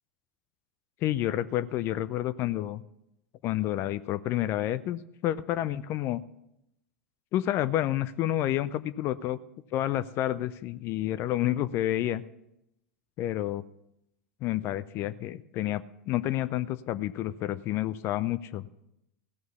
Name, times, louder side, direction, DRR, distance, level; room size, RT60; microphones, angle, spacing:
voice 1, 1.0-2.8 3.4-6.2 7.3-9.4 9.7-12.2 13.2-13.6 14.4-18.7, left 13 dB, 40° left, 15 dB, 0.5 m, -29 dB
16.0 x 6.3 x 7.0 m, 0.84 s
figure-of-eight pair, 85°, 6 cm